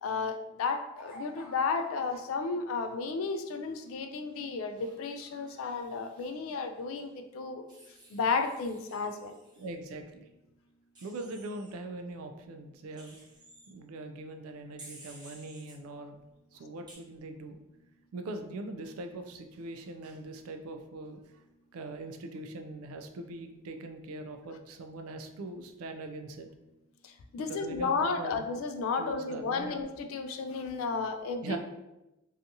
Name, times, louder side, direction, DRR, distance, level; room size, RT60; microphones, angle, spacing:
voice 1, 0.0-7.7 8.1-9.4 27.0-31.6, left 4 dB, 65° left, 7 dB, 0.3 m, -33 dB
sound 1, 1.0-2.2 3.6-4.4 4.7-5.8 6.1-6.6 7.0-7.1, right 1 dB, 20° left, 0.8 m, -50 dB
Wild animals, 4.8-6.3 7.7-9.7 11.0-11.7 13.0-13.7 14.8-15.7 16.9-17.0, right 2 dB, 20° right, 0.7 m, -54 dB
voice 2, 9.6-10.3 11.0-13.2 13.7-16.2 16.5-17.6 18.1-21.2 21.7-26.5 27.4-28.5 29.0-29.8 31.4-31.6, right 2 dB, 75° right, 6 dB, 0.3 m, -41 dB
2.7 x 2.3 x 2.6 m, 0.96 s
head